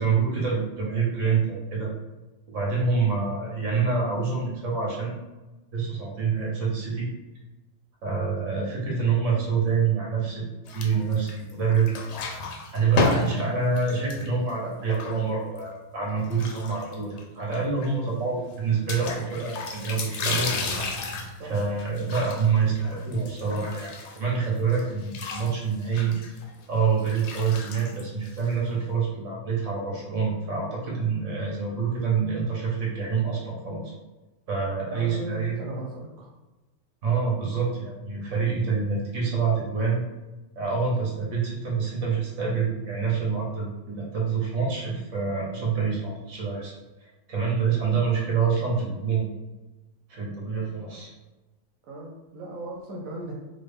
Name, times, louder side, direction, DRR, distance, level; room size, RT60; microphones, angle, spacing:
voice 1, 0.0-1.9 2.5-5.2 5.7-7.1 8.0-11.9 12.7-20.5 21.4-26.2 26.7-33.9 34.5-35.6 37.0-40.0 40.5-46.7 47.3-49.2 50.1-51.1, right 5 dB, 70° right, -3 dB, 1.3 m, -26 dB
sound 1, 10.7-11.5 11.8-15.6 16.2-17.2 17.5-17.6 17.8-17.9 18.9-24.4 24.7-28.7, left 3 dB, 65° left, 0.8 m, -32 dB
voice 2, 34.9-36.3 47.7-48.1 51.9-53.3, right 1 dB, 90° right, -3 dB, 1.0 m, -37 dB
3.7 x 2.0 x 3.3 m, 1.1 s
omnidirectional pair, 1.4 m